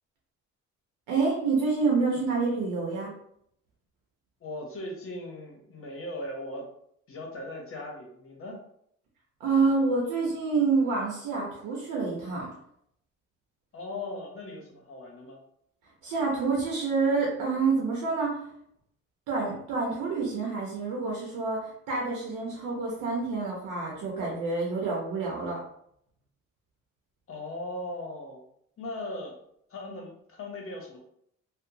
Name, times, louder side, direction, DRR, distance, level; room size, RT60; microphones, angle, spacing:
voice 1, 1.1-3.1 9.4-12.5 16.0-18.4 19.3-25.6, right 4 dB, 85° right, -2 dB, 0.8 m, -27 dB
voice 2, 4.4-6.7 7.1-8.6 13.7-15.4 27.3-28.5 28.8-29.4 29.7-31.0, left 1 dB, 45° left, 1 dB, 0.8 m, -38 dB
2.8 x 2.1 x 2.6 m, 0.70 s
cardioid pair, 90°, 30 cm